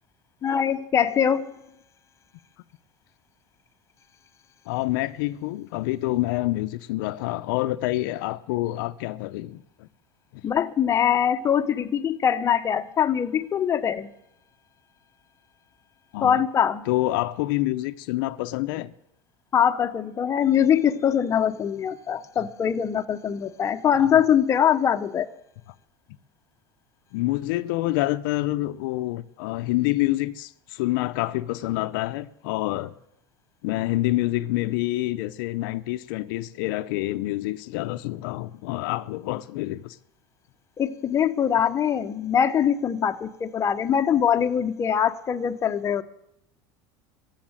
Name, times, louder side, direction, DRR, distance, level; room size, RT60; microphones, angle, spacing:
voice 1, 0.4-1.5 10.4-14.1 16.2-16.9 19.5-25.3 40.8-46.0, left 8 dB, 25° left, 0.8 m, -23 dB
voice 2, 4.7-9.9 10.3-10.4 16.1-16.4 16.9-18.9 24.0-24.1 27.1-32.9 33.6-40.0, left 17 dB, 75° left, 0.6 m, -27 dB
14.5 x 7.2 x 8.9 m
supercardioid pair, 130°, 11 cm